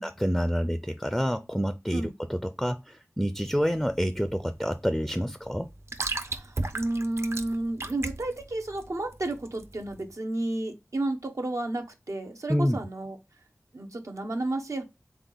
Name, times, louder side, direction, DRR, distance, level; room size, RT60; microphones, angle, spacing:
voice 1, 0.0-5.7 12.5-12.8, equal, ahead, 0.4 m, -28 dB
sound 1, 3.3-10.1, right 2 dB, 60° right, 0.7 m, -36 dB
voice 2, 6.2-13.2 13.7-14.8, right 2 dB, 80° right, 0.9 m, -32 dB
3.7 x 3.5 x 3.9 m
wide cardioid pair, 45°, 5 cm